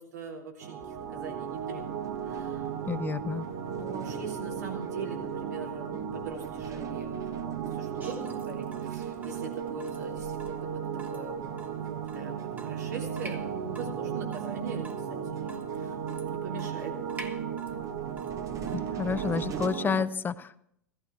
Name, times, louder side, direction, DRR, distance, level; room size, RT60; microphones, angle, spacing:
voice 1, 0.0-2.7 3.7-16.9, right 4 dB, 80° right, 0 dB, 3.4 m, -42 dB
sound 1, 0.6-20.0, right 8 dB, 65° right, 1.6 m, -35 dB
sound 2, 0.8-19.7, right 8 dB, 35° right, 1.1 m, -48 dB
voice 2, 2.8-3.5 18.7-20.6, left 6 dB, 20° left, 13 dB, 0.8 m, -30 dB
Water tap faucet / Drip, 8.0-20.0, right 2 dB, 20° right, 1.5 m, -50 dB
16.0 x 15.0 x 4.5 m, 0.72 s
hypercardioid pair, 95°, 9 cm